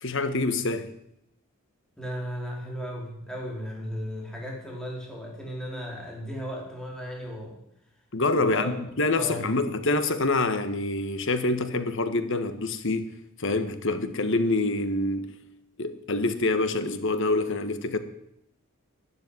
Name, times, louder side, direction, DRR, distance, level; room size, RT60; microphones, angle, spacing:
voice 1, 0.0-0.9 8.1-13.1 13.4-15.3 15.8-18.0, left 2 dB, 55° left, 1.5 m, -26 dB
voice 2, 2.0-7.6 8.3-8.8 9.2-9.5, equal, 5° left, 4.3 m, -35 dB
12.5 x 10.5 x 9.8 m
head